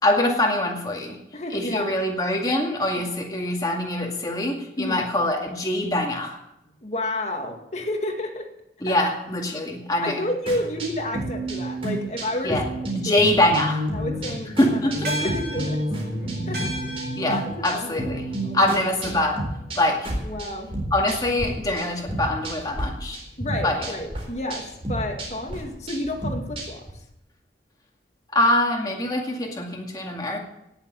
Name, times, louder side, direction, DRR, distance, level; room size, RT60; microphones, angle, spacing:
voice 1, 0.0-1.2 1.5-6.4 8.8-10.2 12.4-12.6 12.9-13.9 14.6-15.1 17.2-18.3 18.5-19.4 19.8-20.1 20.9-23.2 23.6-23.9 28.3-30.4, left 1 dB, 20° left, 0 dB, 2.3 m, -24 dB
voice 2, 1.3-1.9 2.9-3.1 4.8-5.1 6.7-8.5 8.9-9.0 10.0-12.6 12.9-13.2 13.9-14.8 15.1-15.8 16.2-18.1 18.4-18.8 20.2-20.7 23.4-26.8, left 1 dB, 40° left, 3 dB, 2.2 m, -31 dB
sound 1, 10.5-21.5 21.8-22.8 23.1-26.9, right 1 dB, 30° right, 4.2 m, -31 dB
sound 2, 15.0-19.7, right 1 dB, 60° right, 2.9 m, -36 dB
18.0 x 7.3 x 8.0 m, 0.85 s
head